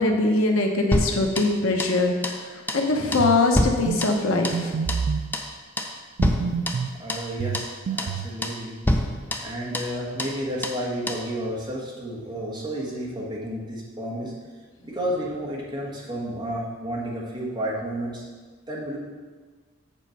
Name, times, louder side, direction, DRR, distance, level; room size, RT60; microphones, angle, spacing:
voice 1, 0.0-4.8, left 2 dB, 90° left, 2 dB, 1.0 m, -22 dB
sound 1, 0.9-2.0 2.2-2.4 2.7-2.9 3.1-4.6 4.9-5.1 5.3-5.5 5.8-6.0 6.2-7.3 7.5-7.7 8.0-8.2 8.4-8.6 8.9-9.9 10.2-10.4 10.6-10.8 11.1-11.3, left 1 dB, 10° left, 0.5 m, -27 dB
sound 2, 3.2-3.5 3.9-4.0 4.5-5.3 6.2-6.9 7.4-8.3, right 5 dB, 70° right, 0.4 m, -27 dB
voice 2, 7.0-8.8 9.4-14.3 14.8-18.2 18.7-19.0, equal, 20° right, -5 dB, 1.5 m, -31 dB
7.4 x 4.3 x 6.4 m, 1.4 s
head